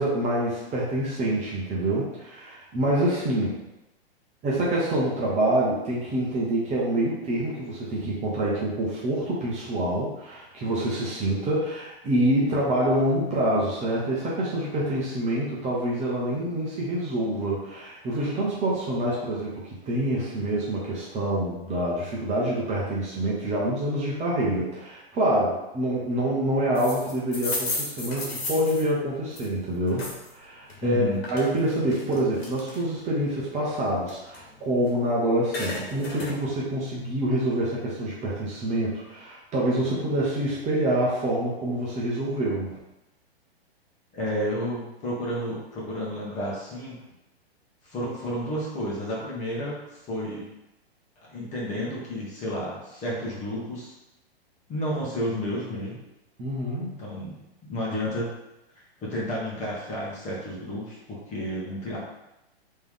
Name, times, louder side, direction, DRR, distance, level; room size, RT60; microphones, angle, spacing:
voice 1, 0.0-3.6 4.4-42.8 56.4-57.0, right 1 dB, 20° right, -6 dB, 1.0 m, -26 dB
sound 1, 26.7-30.3 30.7-33.1 33.5-35.0 35.3-36.4, left 2 dB, 70° left, 1.4 m, -34 dB
voice 2, 30.8-31.2 44.1-47.0 47.8-50.4 51.2-53.9 54.7-56.0 57.0-58.3 58.7-62.0, equal, 25° left, -5 dB, 1.4 m, -31 dB
3.4 x 3.2 x 3.7 m, 0.93 s
hypercardioid pair, 125°, 32 cm